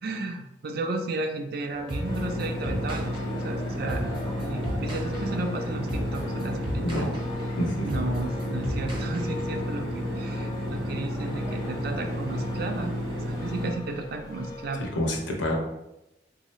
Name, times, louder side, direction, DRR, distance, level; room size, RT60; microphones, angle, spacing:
voice 1, 0.0-7.1 7.8-14.9, right 2 dB, 55° right, 4 dB, 0.5 m, -34 dB
sound 1, 1.7-15.0, left 3 dB, 20° left, 0.6 m, -42 dB
sound 2, 1.9-9.7, equal, 25° right, 0.8 m, -35 dB
sound 3, 2.0-13.7, equal, 80° right, 0.9 m, -32 dB
voice 2, 14.8-15.6, left 1 dB, 75° left, 0 dB, 0.8 m, -27 dB
3.7 x 2.8 x 3.1 m, 0.89 s
head